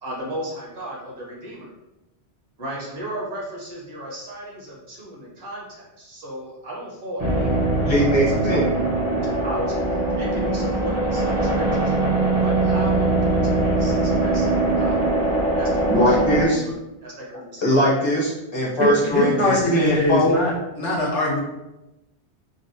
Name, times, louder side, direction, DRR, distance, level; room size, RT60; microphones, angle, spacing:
voice 1, 0.0-1.7 2.6-7.6 7.9-11.8 12.4-15.1 15.6-16.8 17.0-17.7, right 1 dB, 60° right, -4 dB, 1.1 m, -35 dB
sound 1, 7.2-16.4, right 2 dB, 30° right, 0.7 m, -21 dB
voice 2, 7.9-8.7 15.9-16.6 17.6-20.4, equal, 30° left, -5 dB, 0.6 m, -21 dB
voice 3, 18.8-21.4, left 1 dB, 90° left, -5 dB, 1.2 m, -21 dB
3.9 x 2.1 x 2.6 m, 0.98 s
omnidirectional pair, 1.2 m